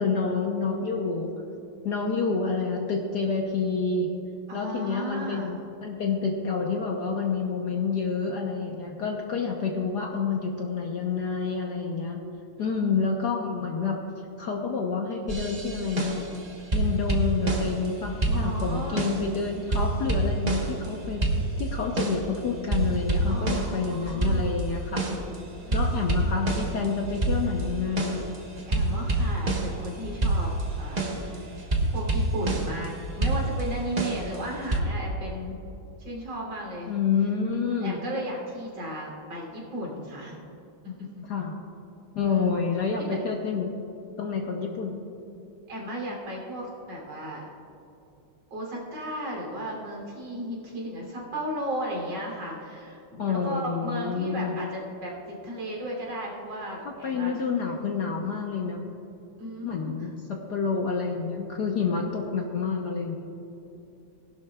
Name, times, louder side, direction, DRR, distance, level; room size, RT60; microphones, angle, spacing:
voice 1, 0.0-1.3 1.8-4.1 4.5-12.2 12.6-14.0 14.4-16.2 16.7-21.3 21.6-25.0 25.7-28.2 36.9-38.0 41.3-41.5 42.2-43.7 44.2-45.0 53.2-54.6 56.8-58.8 59.6-63.2, left 5 dB, 60° left, 1 dB, 1.2 m, -28 dB
voice 2, 4.5-5.5 12.6-12.8 18.3-19.1 23.3-24.6 25.5-25.9 28.7-30.5 30.8-35.6 36.0-36.9 37.7-40.5 40.8-41.3 42.2-42.5 45.7-47.5 48.5-57.3 57.9-58.1 59.4-60.1 61.9-62.4, equal, 65° right, -3 dB, 3.9 m, -35 dB
sound 1, 15.3-16.4 16.7-17.9 18.2-19.4 19.7-20.9 21.2-22.3 22.7-25.3 25.7-29.9 30.2-32.9 33.2-34.8, right 2 dB, 30° right, 0.8 m, -27 dB
19.5 x 11.5 x 2.3 m, 2.8 s
omnidirectional pair, 2.4 m